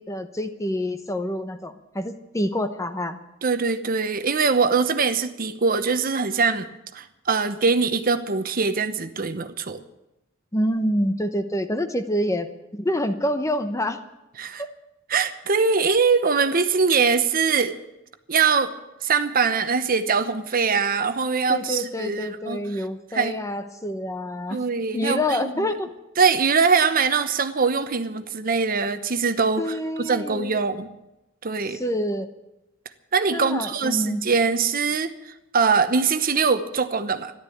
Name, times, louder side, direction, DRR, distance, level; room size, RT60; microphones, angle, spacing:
voice 1, 0.0-3.2 10.5-12.5 12.7-14.0 14.6-14.7 21.5-24.6 24.9-25.9 29.6-30.5 31.7-32.3 33.3-34.2, equal, 15° left, 9 dB, 0.9 m, -27 dB
voice 2, 3.4-6.7 6.9-9.8 14.4-14.6 15.1-17.8 18.3-18.7 19.0-22.6 23.1-23.3 24.5-25.7 26.2-30.9 31.4-31.8 33.1-37.3, right 5 dB, 45° right, 10 dB, 0.9 m, -22 dB
14.0 x 12.0 x 8.5 m, 0.96 s
head